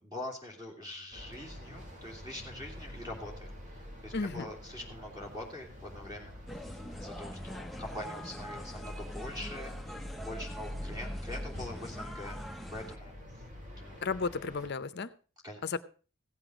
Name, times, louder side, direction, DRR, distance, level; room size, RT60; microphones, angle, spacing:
voice 1, 0.0-3.5 4.0-6.3 7.0-12.4 12.7-13.1 13.7-14.0 15.4-15.6, left 1 dB, 20° right, 0 dB, 2.9 m, -43 dB
sound 1, 1.1-14.7, left 1 dB, 35° right, 2.5 m, -45 dB
voice 2, 4.1-4.5 14.0-15.1 15.6-15.8, left 4 dB, 50° left, 13 dB, 0.7 m, -33 dB
sound 2, 6.5-13.0, equal, ahead, 0.7 m, -44 dB
15.5 x 8.0 x 5.0 m, 0.38 s
head